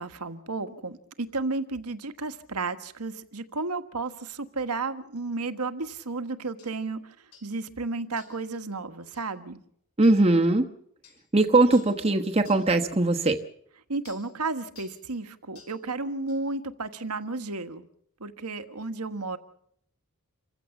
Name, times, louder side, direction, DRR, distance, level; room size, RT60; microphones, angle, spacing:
voice 1, 0.0-7.1 7.4-9.6 13.9-17.9 18.2-19.4, right 3 dB, 85° right, 10 dB, 1.5 m, -33 dB
sound 1, 6.6-6.7 7.3-7.5 8.2-8.5 9.1-9.3 10.0-10.2 11.0-11.2 11.7-12.0 12.5-12.7 13.2-13.4 14.1-14.3 14.8-15.0 15.6-15.8 16.3-16.4, left 6 dB, 70° left, 5.6 m, -52 dB
voice 2, 10.0-10.7 11.3-13.4, right 2 dB, 25° right, 3 dB, 1.2 m, -20 dB
27.5 x 15.5 x 7.2 m, 0.70 s
head